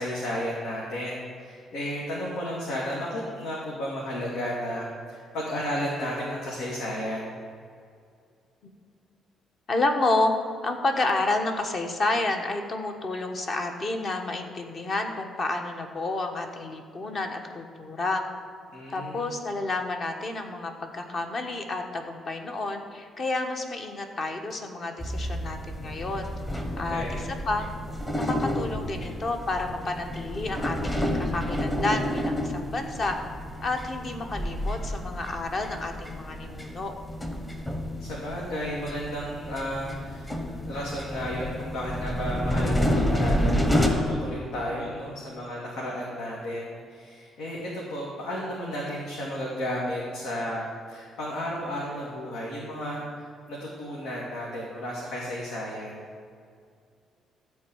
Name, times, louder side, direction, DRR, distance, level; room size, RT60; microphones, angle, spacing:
voice 1, 0.0-7.4 18.7-19.3 26.9-27.2 38.0-40.3 40.7-56.0, equal, 85° left, -4 dB, 2.2 m, -33 dB
voice 2, 9.7-10.3 10.6-18.2 18.9-26.3 26.8-27.7 28.2-33.2 33.6-36.9, left 2 dB, 40° left, 4 dB, 1.2 m, -30 dB
sound 1, 25.0-43.9, equal, 10° left, 1.1 m, -30 dB
13.5 x 4.6 x 8.7 m, 2.3 s
cardioid pair, 145°, 0 cm